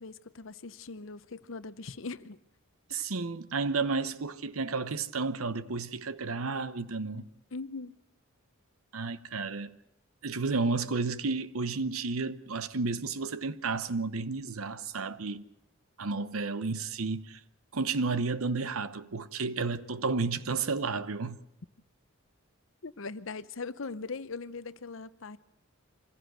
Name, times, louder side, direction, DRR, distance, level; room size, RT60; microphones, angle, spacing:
voice 1, 0.0-2.4 2.9-3.0 7.5-8.0 22.8-25.4, left 4 dB, 65° left, 0.8 m, -40 dB
voice 2, 2.9-7.3 8.9-9.8 10.2-15.4 16.0-17.4 17.7-21.4, right 4 dB, 85° right, 0.9 m, -32 dB
25.0 x 16.0 x 7.9 m
head